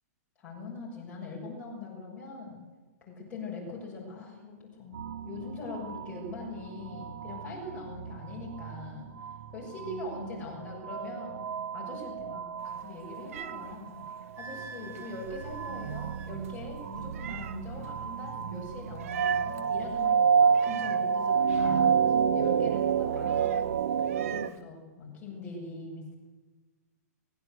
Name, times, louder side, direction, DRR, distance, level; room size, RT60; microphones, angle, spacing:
voice 1, 0.4-2.6 3.0-11.4 11.7-22.0 22.3-23.7 24.1-26.2, left 2 dB, 15° left, -3 dB, 6.8 m, -42 dB
sound 1, 4.9-24.5, right 7 dB, 70° right, 1.0 m, -30 dB
Meow, 12.6-24.6, right 9 dB, 55° right, 1.3 m, -46 dB
Wind instrument woodwind instrument, 14.4-16.4, right 3 dB, 20° right, 1.5 m, -47 dB
24.0 x 21.0 x 7.9 m, 1.3 s
hypercardioid pair, 160°, 9 cm